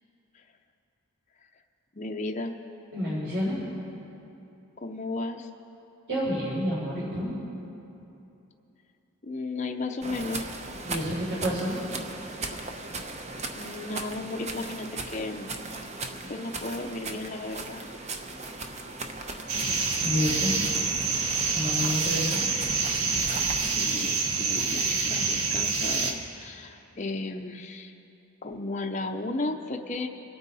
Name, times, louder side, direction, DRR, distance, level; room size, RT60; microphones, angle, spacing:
voice 1, 1.9-2.5 4.8-5.5 9.2-10.5 12.4-12.7 13.6-15.5 16.3-17.8 23.8-27.9 28.4-30.1, left 2 dB, 35° left, 3 dB, 0.6 m, -34 dB
voice 2, 2.9-3.6 6.1-7.3 10.9-11.8 20.0-20.6 21.5-22.4, equal, 50° right, -10 dB, 3.8 m, -29 dB
sound 1, 10.0-23.8, right 3 dB, 30° right, 0.7 m, -38 dB
sound 2, 19.5-26.1, right 4 dB, 80° right, 1.3 m, -27 dB
26.0 x 9.2 x 4.1 m, 2.9 s
head